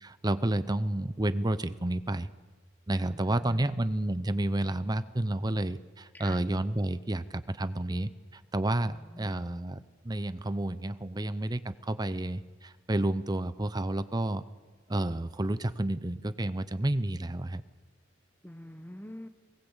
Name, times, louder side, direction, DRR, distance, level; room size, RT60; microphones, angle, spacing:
voice 1, 0.0-2.3 2.9-8.1 8.5-9.8 10.0-14.4 14.9-17.6, right 1 dB, 20° right, 13 dB, 0.7 m, -30 dB
voice 2, 2.9-3.8 6.1-6.4 8.8-9.4 18.4-19.3, left 1 dB, 10° left, 9 dB, 1.0 m, -47 dB
21.0 x 19.0 x 8.2 m, 1.4 s
head